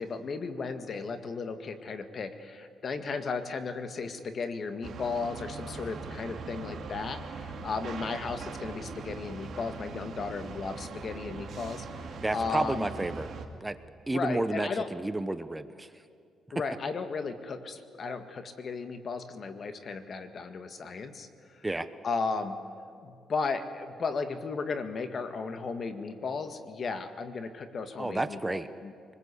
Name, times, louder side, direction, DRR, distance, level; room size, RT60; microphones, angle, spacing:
voice 1, 0.0-12.9 14.1-14.9 16.5-21.7 22.0-22.6 23.0-28.9, left 4 dB, 50° left, 8 dB, 1.9 m, -35 dB
sound 1, 4.8-13.5, right 4 dB, 55° right, 2.7 m, -41 dB
voice 2, 12.2-13.3 13.6-13.8 14.1-15.9 21.6-21.9 28.0-28.7, right 2 dB, 15° right, 11 dB, 0.9 m, -31 dB
24.0 x 21.0 x 8.4 m, 2.4 s
cardioid pair, 90°, 0 cm